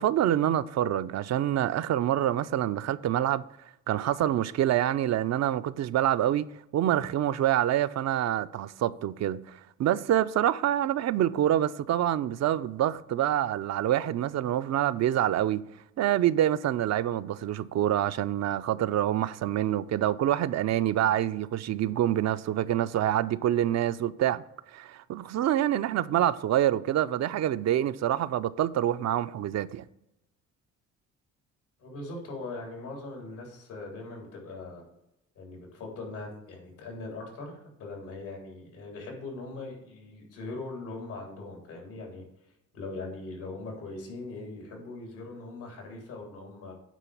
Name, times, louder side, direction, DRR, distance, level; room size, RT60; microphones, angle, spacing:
voice 1, 0.0-3.4 3.9-6.5 6.7-15.6 16.0-24.4 24.7-29.8, right 12 dB, 60° right, 0.5 m, -26 dB
voice 2, 31.8-34.8 35.4-42.2 42.7-46.7, left 2 dB, 90° left, 3.7 m, -40 dB
9.2 x 3.8 x 7.0 m
cardioid pair, 90°, 30 cm